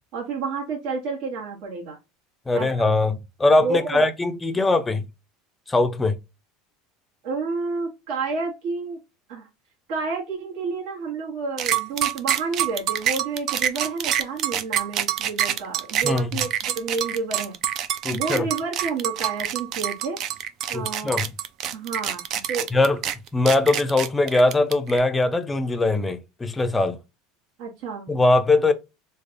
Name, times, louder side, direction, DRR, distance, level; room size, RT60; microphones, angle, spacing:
voice 1, 0.1-2.0 2.5-2.7 3.6-4.0 7.2-9.0 9.3-9.5 9.9-17.5 18.1-20.2 20.7-21.2 21.7-22.2 22.5-22.7 27.6-28.1, right 4 dB, 60° right, 1.3 m, -30 dB
voice 2, 2.5-5.0 5.7-6.1 16.0-16.3 18.0-18.5 20.7-21.3 22.7-23.0 23.3-27.0 28.1-28.7, left 2 dB, 10° left, 0.5 m, -21 dB
sound 1, 11.6-25.0, right 10 dB, 45° right, 0.4 m, -26 dB
3.3 x 2.3 x 3.7 m
supercardioid pair, 145°, 0 cm